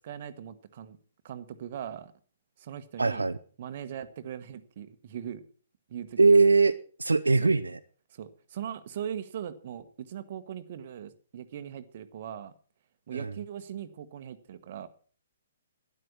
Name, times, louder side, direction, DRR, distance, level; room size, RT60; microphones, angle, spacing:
voice 1, 0.0-1.0 1.2-2.1 2.6-3.3 3.6-5.4 5.9-6.5 7.4-7.5 8.1-12.5 13.1-14.9, right 9 dB, 45° right, 12 dB, 1.2 m, -40 dB
voice 2, 3.0-3.4 6.2-6.7 7.0-7.8 13.1-13.3, right 3 dB, 75° right, 11 dB, 0.7 m, -21 dB
12.5 x 10.5 x 6.1 m, 0.42 s
figure-of-eight pair, 125°, 0 cm